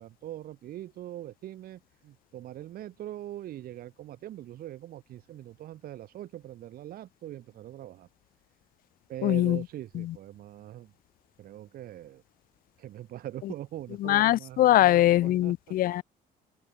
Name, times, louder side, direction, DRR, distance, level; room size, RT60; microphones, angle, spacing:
voice 1, 0.0-8.1 9.1-10.9 11.4-12.2 12.8-15.8, right 13 dB, 65° right, 1.2 m, -42 dB
voice 2, 9.2-9.6 9.9-10.2 13.4-13.5 14.0-16.0, left 14 dB, 60° left, 0.5 m, -22 dB
open air
cardioid pair, 110°, 17 cm